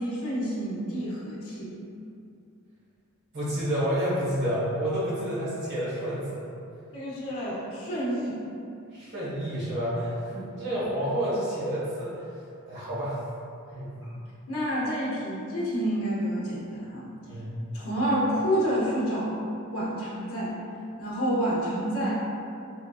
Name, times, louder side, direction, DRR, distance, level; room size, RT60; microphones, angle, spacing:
voice 1, 0.0-1.8 6.9-8.4 10.3-10.4 14.0-14.1 14.5-17.1 17.7-19.3 19.7-20.6 21.0-22.2, equal, 70° left, -7 dB, 0.7 m, -29 dB
voice 2, 3.3-6.4 8.9-10.3 10.6-12.2 12.7-13.2 13.7-13.9 17.3-17.5, equal, 55° right, -9 dB, 1.2 m, -29 dB
4.2 x 2.3 x 2.3 m, 2.5 s
head